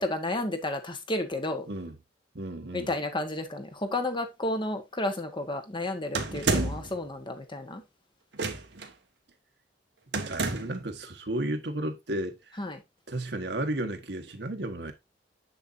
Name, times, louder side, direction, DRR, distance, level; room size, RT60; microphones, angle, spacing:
voice 1, 0.0-1.7 2.7-7.8 12.6-12.8, left 1 dB, 30° left, 1.4 m, -32 dB
voice 2, 2.3-2.9 10.2-12.4 13.1-14.9, right 1 dB, 70° right, 1.4 m, -33 dB
sound 1, 6.1-7.0 8.3-8.9 10.1-10.8, right 3 dB, 85° right, 1.5 m, -29 dB
7.5 x 6.9 x 2.7 m
head